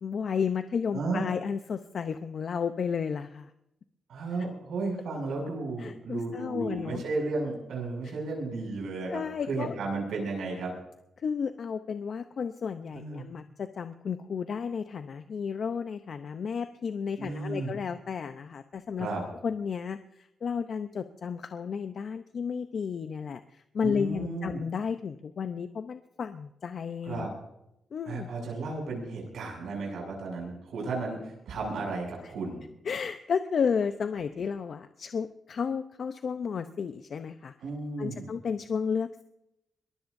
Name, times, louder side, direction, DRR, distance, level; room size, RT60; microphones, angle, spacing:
voice 1, 0.0-3.5 4.4-4.5 5.8-7.0 8.0-8.1 9.1-9.7 11.2-19.1 19.4-27.3 27.9-28.3 32.2-32.3 32.8-37.5 38.0-39.3, left 6 dB, 60° left, 9 dB, 0.7 m, -32 dB
voice 2, 0.9-1.2 4.1-9.2 9.5-10.7 12.9-13.2 17.2-17.7 19.0-19.2 23.8-24.6 27.0-27.3 28.1-32.6 37.6-38.3, right 3 dB, 80° right, 0 dB, 6.8 m, -34 dB
22.5 x 19.0 x 2.7 m, 0.83 s
cardioid pair, 90°, 0 cm